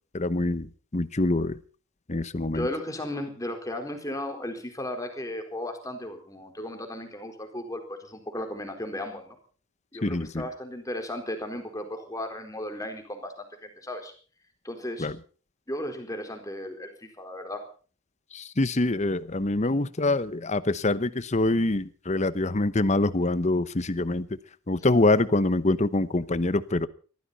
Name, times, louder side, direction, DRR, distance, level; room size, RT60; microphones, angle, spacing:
voice 1, 0.1-1.6 2.1-2.7 10.0-10.5 15.0-15.2 18.3-24.3 24.7-26.9, left 2 dB, 35° left, 16 dB, 0.9 m, -25 dB
voice 2, 2.5-9.4 9.9-14.1 14.6-15.1 15.7-17.7, left 1 dB, 15° left, 5 dB, 4.1 m, -35 dB
22.0 x 15.0 x 4.1 m, 0.40 s
head